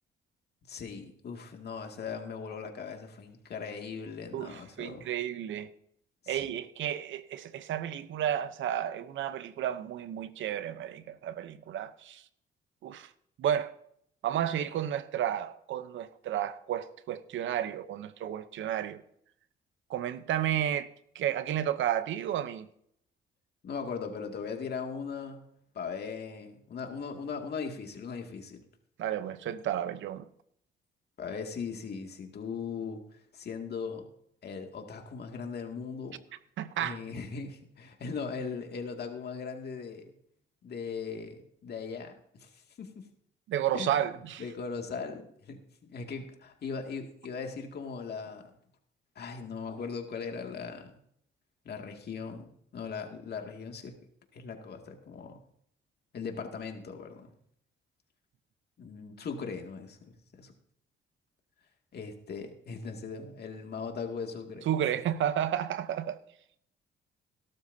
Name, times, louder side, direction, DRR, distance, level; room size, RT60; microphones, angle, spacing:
voice 1, 0.7-5.1 6.2-6.5 23.6-25.4 25.7-28.6 31.2-33.0 33.3-34.1 34.4-36.2 36.8-40.1 40.6-42.9 43.7-48.5 49.2-51.0 51.6-53.9 54.3-55.4 56.1-57.3 58.8-60.5 61.9-64.7, left 5 dB, 55° left, 2.3 m, -39 dB
voice 2, 4.3-5.7 6.3-12.2 12.8-13.1 13.4-13.7 14.2-19.0 19.9-20.9 21.1-22.7 29.0-30.3 36.6-37.0 43.5-44.4 64.7-66.2, right 10 dB, 75° right, 0.8 m, -32 dB
18.0 x 12.0 x 2.8 m
cardioid pair, 90°, 20 cm